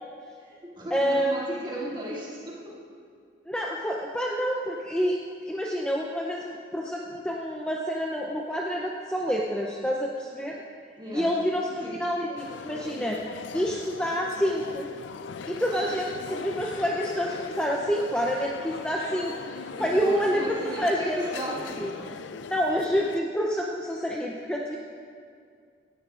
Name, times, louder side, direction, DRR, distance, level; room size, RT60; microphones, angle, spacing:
voice 1, 0.4-2.8 11.0-11.3 11.6-12.0 12.3-12.4 19.7-22.3, equal, 25° right, -6 dB, 2.5 m, -36 dB
voice 2, 0.9-1.3 3.5-5.2 5.5-10.6 11.1-13.2 13.5-14.9 15.5-21.2 21.8-21.9 22.5-24.8, equal, 5° left, -2 dB, 0.5 m, -28 dB
sound 1, 12.4-23.2, left 5 dB, 75° left, 0.4 m, -39 dB
17.5 x 12.5 x 2.5 m, 2.2 s
head